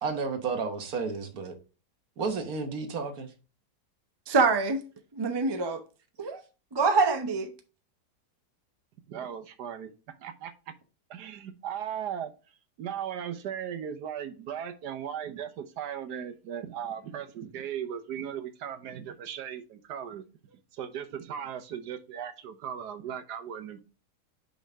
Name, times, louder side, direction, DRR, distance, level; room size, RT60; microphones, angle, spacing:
voice 1, 0.0-1.5 2.2-3.3, right 4 dB, 65° right, 1.5 m, -32 dB
voice 2, 4.3-4.8 5.1-5.8 6.2-6.4 6.7-7.5, right 4 dB, 25° right, 0.5 m, -25 dB
voice 3, 9.1-9.9 10.2-10.7 11.1-12.3 12.8-20.2 20.7-23.8, right 9 dB, 80° right, 1.4 m, -37 dB
6.2 x 5.2 x 3.5 m
omnidirectional pair, 1.7 m